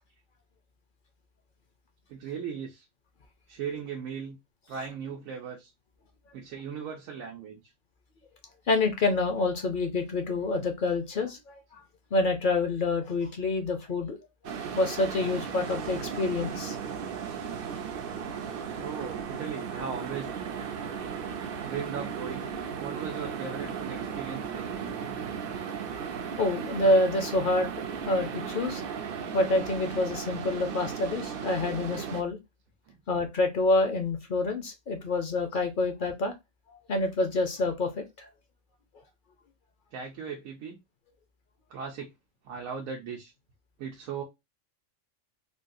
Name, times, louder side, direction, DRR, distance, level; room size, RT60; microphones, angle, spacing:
voice 1, 2.1-2.8 3.5-4.4 4.7-5.7 6.3-7.6 18.3-20.3 21.6-22.5 22.8-24.7 32.9-33.0 39.9-40.8 41.7-42.1 42.4-43.3 43.8-44.2, right 6 dB, 85° right, 1.1 m, -38 dB
voice 2, 8.7-11.8 12.1-14.2 14.4-16.8 25.0-25.1 26.4-27.7 28.1-28.8 29.3-32.4 33.1-36.3 36.7-38.3, left 2 dB, 50° left, 0.6 m, -27 dB
sound 1, 14.4-32.2, right 7 dB, 60° right, 0.6 m, -36 dB
3.6 x 2.3 x 2.5 m
omnidirectional pair, 1.4 m